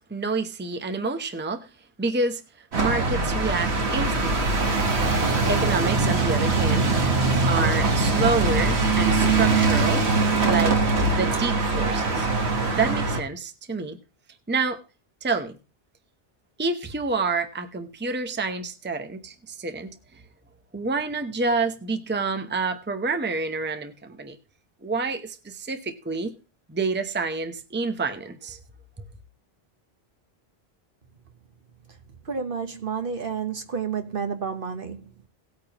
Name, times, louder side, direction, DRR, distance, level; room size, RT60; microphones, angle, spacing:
voice 1, 0.1-1.7 2.0-4.5 5.5-6.9 7.5-10.0 10.4-10.8 11.1-12.3 12.7-14.0 14.5-14.8 15.2-15.6 16.6-19.9 20.7-24.4 24.8-26.3 26.7-28.6, right 3 dB, 10° right, 0.7 m, -28 dB
sound 1, 2.7-13.2, right 3 dB, 90° right, 1.7 m, -22 dB
voice 2, 32.2-35.0, right 6 dB, 60° right, 1.3 m, -30 dB
18.0 x 8.7 x 3.0 m
omnidirectional pair, 1.1 m